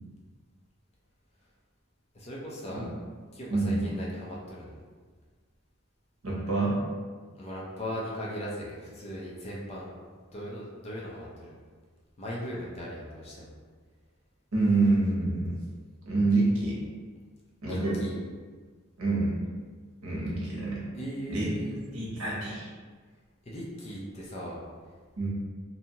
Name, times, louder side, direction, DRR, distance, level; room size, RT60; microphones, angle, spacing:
voice 1, 2.1-2.9 3.3-4.7 7.4-9.9 10.3-11.5 12.2-13.5 17.6-18.2 20.9-21.8 23.4-24.6, equal, 30° left, -4 dB, 0.5 m, -38 dB
voice 2, 6.2-6.8 14.5-15.5 16.1-16.8 17.6-18.0 19.0-19.3 20.0-20.8 21.3-21.5 21.9-22.7 25.2-25.3, right 3 dB, 75° right, -5 dB, 0.9 m, -26 dB
2.7 x 2.3 x 2.8 m, 1.5 s
head